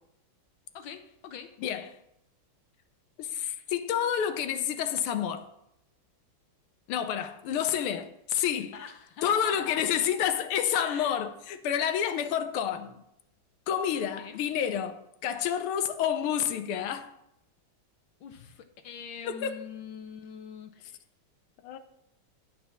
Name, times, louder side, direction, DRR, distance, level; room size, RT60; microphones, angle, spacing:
voice 1, 0.7-1.6 8.7-9.9 10.8-11.2 14.2-14.4 18.2-21.0, left 7 dB, 70° left, 1.3 m, -43 dB
voice 2, 3.2-5.5 6.9-8.8 9.2-13.0 13.7-17.1 19.2-19.6 21.6-21.8, left 9 dB, 85° left, 1.7 m, -29 dB
11.5 x 4.4 x 6.8 m
omnidirectional pair, 2.3 m